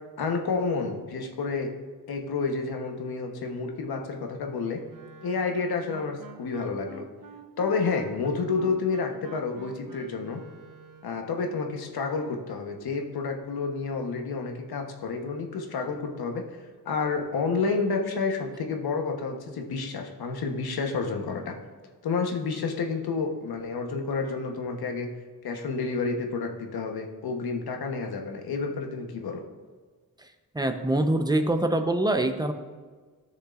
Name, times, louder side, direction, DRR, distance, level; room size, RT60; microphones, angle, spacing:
voice 1, 0.2-1.7 2.1-4.8 5.2-7.1 7.6-10.4 11.0-16.4 16.8-21.6 22.0-25.1 25.4-29.4, left 4 dB, 85° left, 3 dB, 1.2 m, -30 dB
Wind instrument woodwind instrument, 4.9-11.3, right 4 dB, 60° right, 0.9 m, -47 dB
voice 2, 30.5-32.5, right 1 dB, 10° right, 6 dB, 0.8 m, -24 dB
15.5 x 6.4 x 2.5 m, 1.5 s
wide cardioid pair, 100°, 36 cm